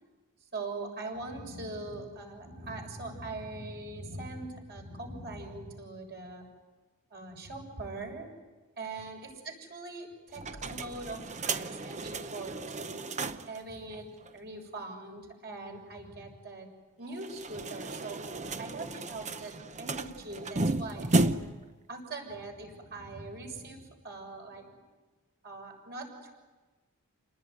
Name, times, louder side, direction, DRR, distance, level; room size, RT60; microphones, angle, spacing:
voice 1, 0.5-6.5 7.1-8.3 8.8-16.7 17.0-18.2 18.6-21.6 21.9-24.8 25.4-26.3, right 2 dB, 50° right, 2 dB, 7.0 m, -42 dB
sound 1, 10.3-13.6 13.9-14.0 14.3-14.4 17.1-21.7, right 2 dB, 35° right, 0.9 m, -33 dB
29.0 x 19.5 x 9.4 m, 1.3 s
head